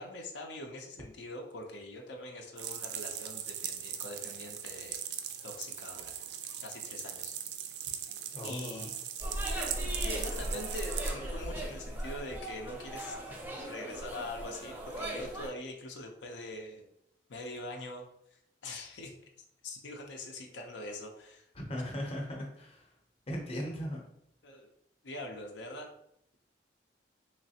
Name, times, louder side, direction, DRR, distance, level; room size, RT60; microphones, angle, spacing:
voice 1, 0.0-5.0 5.4-6.2 6.6-7.3 8.4-8.9 9.3-9.4 10.0-13.2 13.5-16.9 17.3-18.0 18.3-19.2 19.6-21.5 23.5-23.7 24.4-24.7 25.0-25.9, left 1 dB, 80° left, 2 dB, 0.6 m, -43 dB
sound 1, 2.6-11.1, right 9 dB, 65° right, 0.4 m, -40 dB
voice 2, 8.3-8.9 21.6-22.8 23.3-24.0, equal, 35° left, 0 dB, 0.7 m, -38 dB
sound 2, 9.2-15.5, right 1 dB, 10° right, 0.5 m, -38 dB
3.2 x 3.1 x 2.8 m, 0.75 s
head